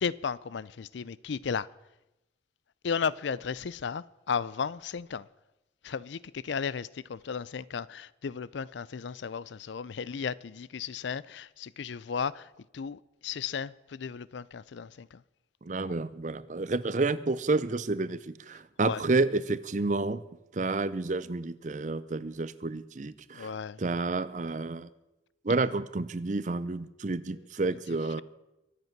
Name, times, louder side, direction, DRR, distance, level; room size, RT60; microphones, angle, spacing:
voice 1, 0.0-1.7 2.8-5.2 5.8-12.5 12.7-15.2 18.8-19.0 23.3-23.8, left 6 dB, 75° left, 0.4 m, -34 dB
voice 2, 15.6-20.2 20.5-23.5 23.8-24.9 25.4-28.2, right 3 dB, 40° right, 0.6 m, -30 dB
23.0 x 8.2 x 5.9 m
head